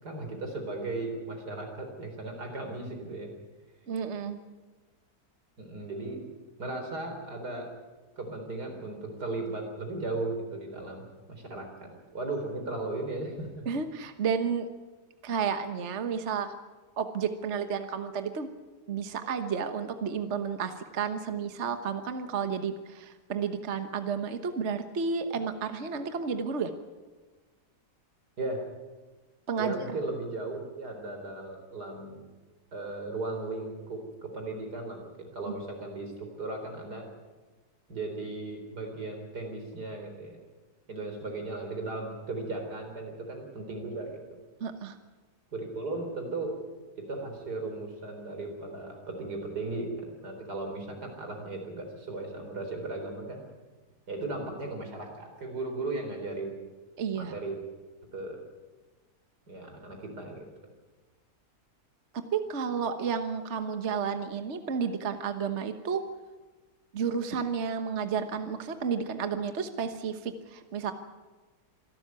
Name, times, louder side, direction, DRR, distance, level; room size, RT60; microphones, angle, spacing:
voice 1, 0.0-3.3 5.6-6.3 6.6-7.7 8.2-13.6 28.4-28.7 29.6-32.2 32.7-37.1 37.9-40.4 40.9-44.4 45.5-46.6 47.0-53.4 54.1-56.6 57.1-57.6 58.1-58.4 59.5-60.5, right 2 dB, 90° right, 3 dB, 4.7 m, -36 dB
voice 2, 3.9-4.4 13.7-14.7 15.2-16.6 17.0-18.5 18.9-26.7 29.5-29.7 44.6-45.0 57.0-57.3 62.3-66.0 66.9-70.9, right 6 dB, 50° right, 8 dB, 1.4 m, -31 dB
26.0 x 12.5 x 9.6 m, 1.3 s
omnidirectional pair, 1.7 m